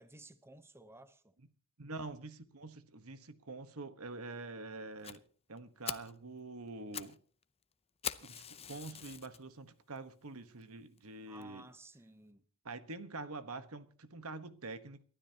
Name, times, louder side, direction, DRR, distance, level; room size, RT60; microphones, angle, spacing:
voice 1, 0.0-1.2 11.3-12.4, right 2 dB, 10° right, 0.8 m, -55 dB
voice 2, 1.8-5.2 5.5-7.2 8.2-11.7 12.6-15.0, right 3 dB, 75° right, 1.3 m, -46 dB
Fire, 5.0-5.2 5.6-5.7 5.8-6.1 6.7-7.2 7.4-7.5 8.0-9.4 10.0-10.1 10.6-10.7 11.0-11.1 11.4-11.5, left 9 dB, 30° left, 0.7 m, -42 dB
29.0 x 12.5 x 2.9 m
head